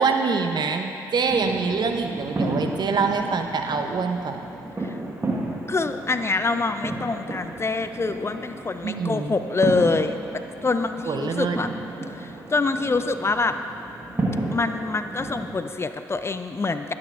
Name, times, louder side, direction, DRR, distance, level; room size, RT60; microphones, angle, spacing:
voice 1, 0.0-4.4 8.8-9.3 11.1-11.6, right 5 dB, 55° right, 5 dB, 0.7 m, -25 dB
sound 1, 1.3-15.5, right 2 dB, 30° right, 1.4 m, -32 dB
voice 2, 5.7-11.7 12.1-13.6 14.5-16.9, left 3 dB, 30° left, 9 dB, 0.4 m, -25 dB
11.0 x 9.5 x 2.5 m, 2.8 s
hypercardioid pair, 45°, 9 cm